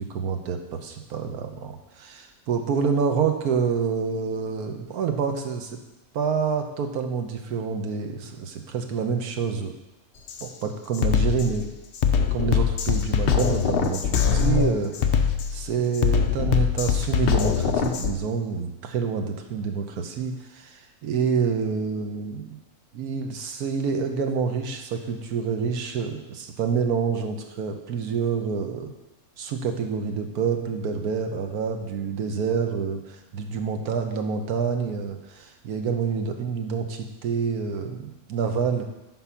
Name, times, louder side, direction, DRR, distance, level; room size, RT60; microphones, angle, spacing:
voice 1, 0.0-5.8 6.1-9.7 10.4-11.7 12.3-22.6 22.9-29.0 29.4-38.8, right 6 dB, 90° right, 5 dB, 1.4 m, -27 dB
Drum kit, 10.3-10.5 10.9-18.1, left 7 dB, 60° left, 0.6 m, -23 dB
10.5 x 3.9 x 5.7 m, 0.98 s
omnidirectional pair, 1.6 m